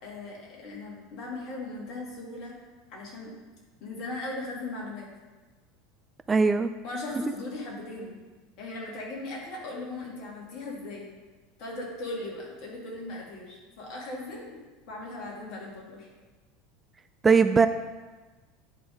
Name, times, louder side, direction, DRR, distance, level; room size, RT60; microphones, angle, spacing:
voice 1, 0.0-2.6 2.9-3.3 3.8-5.1 6.8-8.1 8.6-11.1 11.6-16.1, left 2 dB, 50° left, -3 dB, 2.4 m, -38 dB
voice 2, 6.3-6.7 17.2-17.7, right 5 dB, 20° right, 10 dB, 0.3 m, -19 dB
10.0 x 3.8 x 5.1 m, 1.3 s
figure-of-eight pair, 75°, 0 cm